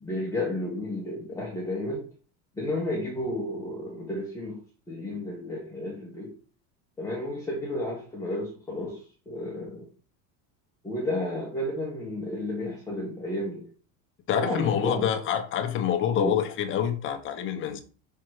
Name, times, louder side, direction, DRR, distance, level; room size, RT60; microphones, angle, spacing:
voice 1, 0.0-2.1 2.6-4.6 4.9-6.3 7.0-9.0 9.3-9.9 10.8-13.7 14.3-15.1 16.1-16.3, left 1 dB, 5° left, 1.0 m, -32 dB
voice 2, 14.3-17.8, left 9 dB, 30° left, 0.8 m, -27 dB
5.7 x 3.8 x 4.6 m
cardioid pair, 170°, 42 cm